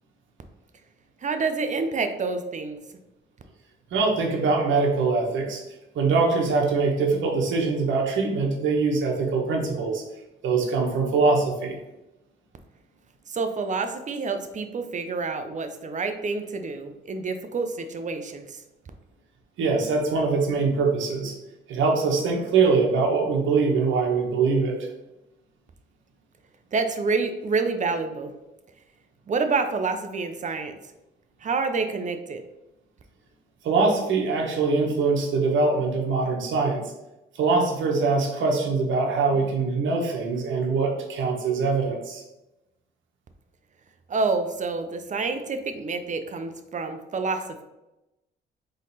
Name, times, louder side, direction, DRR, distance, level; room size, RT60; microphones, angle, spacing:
voice 1, 1.2-2.8 13.3-18.6 26.7-28.3 29.3-30.7 31.4-32.4 44.1-47.6, right 4 dB, 40° right, 7 dB, 0.6 m, -28 dB
voice 2, 3.9-5.6 5.9-10.0 10.4-11.8 19.6-21.3 21.7-24.7 33.6-36.8 37.4-42.2, right 4 dB, 75° right, 0 dB, 1.1 m, -23 dB
3.9 x 3.2 x 4.1 m, 0.96 s
cardioid pair, 90°, 20 cm